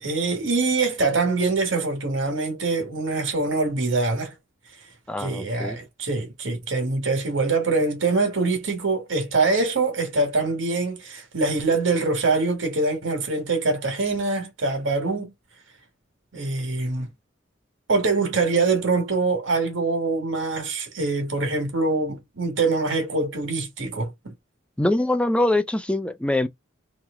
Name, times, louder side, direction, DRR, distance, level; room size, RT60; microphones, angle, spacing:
voice 1, 0.0-4.3 5.2-15.3 16.3-17.1 17.9-24.3, right 3 dB, 75° right, 1.5 m, -24 dB
voice 2, 5.1-5.8 24.8-26.5, left 1 dB, 5° left, 0.5 m, -23 dB
3.0 x 2.8 x 3.6 m
head